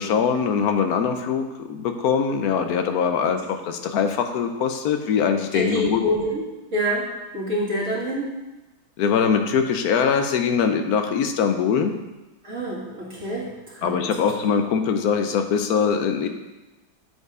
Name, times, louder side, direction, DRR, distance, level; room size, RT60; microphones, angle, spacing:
voice 1, 0.0-6.0 9.0-11.9 13.8-16.3, left 6 dB, 70° left, 6 dB, 1.1 m, -22 dB
voice 2, 5.5-6.4 6.7-7.1 7.3-8.3 12.4-14.1, equal, 50° right, -4 dB, 2.0 m, -26 dB
8.0 x 4.6 x 4.8 m, 1.1 s
omnidirectional pair, 1.7 m